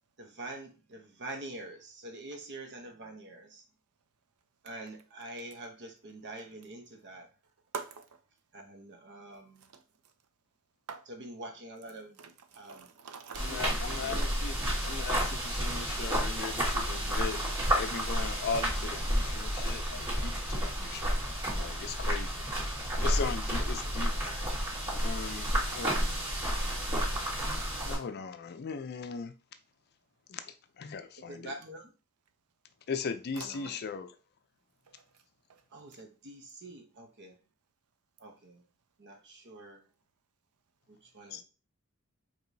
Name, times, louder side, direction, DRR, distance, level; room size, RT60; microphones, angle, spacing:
voice 1, 0.2-3.6 4.6-7.3 8.5-9.7 11.1-12.9 13.4-14.3 23.6-23.7 24.2-24.4 31.3-31.9 33.4-33.8 35.7-37.4 38.2-38.6 39.0-39.8 40.9-41.4, right 2 dB, 50° right, 0.9 m, -46 dB
voice 2, 7.7-8.0 9.7-9.8 10.9-11.0 12.2-13.5, right 5 dB, 75° right, 0.6 m, -43 dB
sound 1, 13.3-28.0, equal, 25° right, 2.0 m, -31 dB
voice 3, 13.4-17.4 17.8-21.1 21.6-22.4 23.0-24.2 25.0-26.2 27.4-29.3 30.3-31.5 32.9-34.2 41.3-41.4, left 5 dB, 45° left, 0.4 m, -38 dB
4.8 x 3.0 x 2.7 m
head